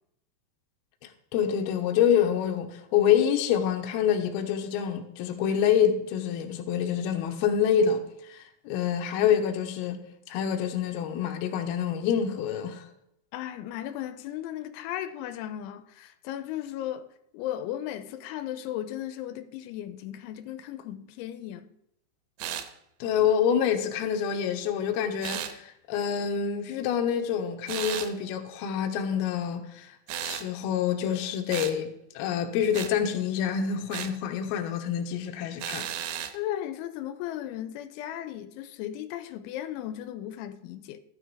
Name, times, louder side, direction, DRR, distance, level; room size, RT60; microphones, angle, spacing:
voice 1, 1.3-10.0 10.3-12.8 23.0-30.0 30.2-35.9, left 8 dB, 70° left, 2.7 m, -27 dB
voice 2, 13.3-17.1 17.3-21.7 36.3-41.0, left 12 dB, 90° left, 3.2 m, -36 dB
sound 1, 22.4-22.7 25.2-25.5 27.7-28.1 30.1-30.5 31.5-31.8 32.7-32.9 33.9-34.2 35.6-36.4, right 10 dB, 80° right, 2.9 m, -34 dB
13.5 x 9.5 x 4.8 m
omnidirectional pair, 5.3 m